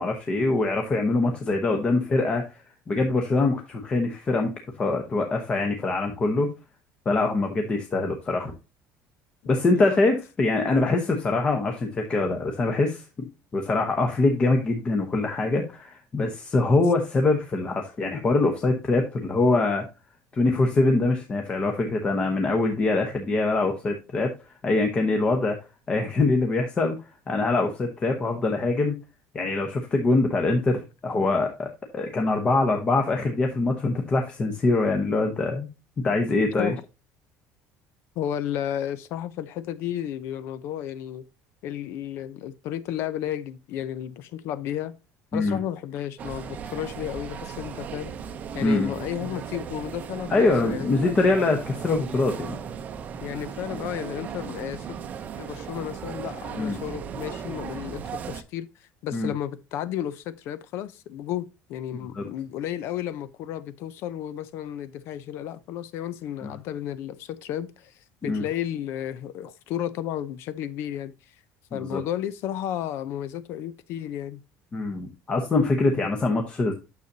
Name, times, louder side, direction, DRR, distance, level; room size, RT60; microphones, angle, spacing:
voice 1, 0.0-2.4 2.9-6.5 7.0-8.5 9.5-13.3 13.5-19.8 20.3-24.3 24.6-25.6 25.9-27.0 27.3-28.9 29.3-35.7 36.0-36.7 45.3-45.6 48.6-48.9 50.3-52.6 56.6-56.8 59.1-59.3 62.1-62.2 66.4-66.6 68.2-68.4 71.7-72.0 74.7-76.7, left 3 dB, 20° left, 0.9 m, -24 dB
voice 2, 38.2-41.2 41.6-45.0 45.3-48.1 48.5-51.1 53.2-54.9 55.4-71.1 71.7-74.4 76.0-76.1, left 11 dB, 55° left, 0.6 m, -33 dB
sound 1, 46.2-58.4, right 7 dB, 30° right, 0.7 m, -36 dB
9.5 x 6.6 x 2.7 m
cardioid pair, 175°, 5 cm